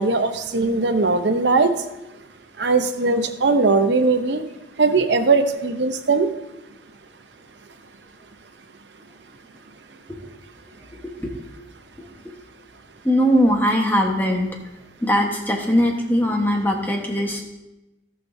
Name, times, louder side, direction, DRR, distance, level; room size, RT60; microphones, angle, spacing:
voice 1, 0.0-1.7 2.6-4.4 4.8-6.3, right 3 dB, 80° right, 7 dB, 0.8 m, -19 dB
voice 2, 13.0-14.5 15.0-17.4, equal, 10° left, 1 dB, 1.2 m, -20 dB
17.5 x 6.0 x 2.7 m, 0.99 s
head